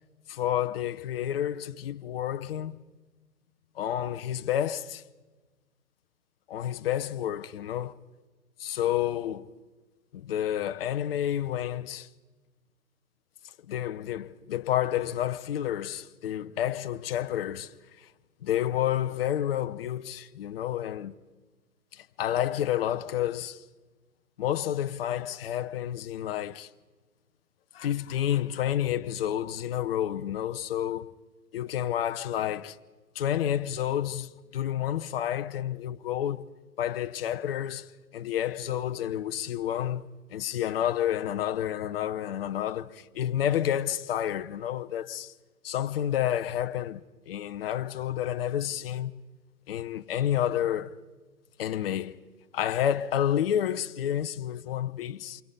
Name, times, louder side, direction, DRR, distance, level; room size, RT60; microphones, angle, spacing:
voice 1, 0.3-2.8 3.8-5.0 6.5-7.9 8.6-9.5 10.1-12.1 13.7-18.1 18.4-21.1 21.9-23.6 24.4-26.7 27.7-31.1 31.5-32.8 33.1-36.5 36.8-45.3 45.6-49.1 49.7-50.9 51.6-52.2 52.5-55.4, left 11 dB, 40° left, 0.9 m, -30 dB
28.5 x 24.5 x 5.4 m
figure-of-eight pair, 125°, 44 cm